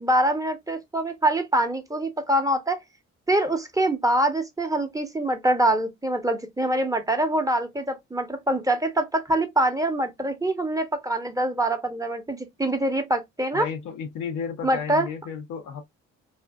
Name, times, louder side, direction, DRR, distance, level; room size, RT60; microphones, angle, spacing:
voice 1, 0.0-2.8 3.3-13.7 14.6-15.1, right 1 dB, 10° right, 0.8 m, -24 dB
voice 2, 13.5-15.8, left 6 dB, 75° left, 0.8 m, -33 dB
2.5 x 2.4 x 2.3 m
supercardioid pair, 55°, 30 cm